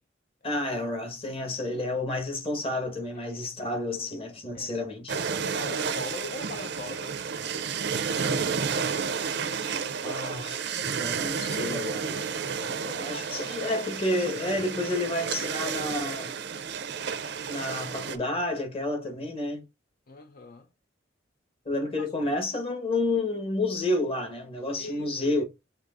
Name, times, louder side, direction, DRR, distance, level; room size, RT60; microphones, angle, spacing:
voice 1, 0.4-5.2 10.0-12.1 13.0-16.3 17.5-19.6 21.6-25.4, left 2 dB, 30° left, 1.3 m, -30 dB
voice 2, 3.1-3.8 4.5-4.7 5.5-7.2 12.5-13.9 20.1-20.7 24.8-25.4, left 2 dB, 50° left, 0.6 m, -42 dB
sound 1, 5.1-18.2, right 6 dB, 65° right, 0.5 m, -31 dB
6.3 x 2.8 x 2.5 m
head